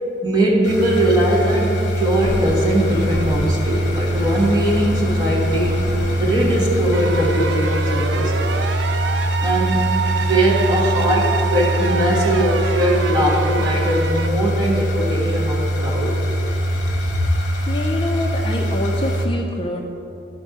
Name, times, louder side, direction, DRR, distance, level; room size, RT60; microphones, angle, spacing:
voice 1, 0.2-5.8 6.2-8.6 9.4-9.9 10.2-16.2, right 1 dB, 25° right, -4 dB, 1.4 m, -20 dB
sound 1, 0.6-19.3, equal, 45° left, 1.2 m, -22 dB
sound 2, 2.2-7.3, equal, 50° right, 1.1 m, -32 dB
sound 3, 6.9-14.3, right 7 dB, 80° right, 0.4 m, -27 dB
voice 2, 17.7-19.8, left 1 dB, 25° left, 1 dB, 0.4 m, -25 dB
12.5 x 4.2 x 4.6 m, 2.8 s
head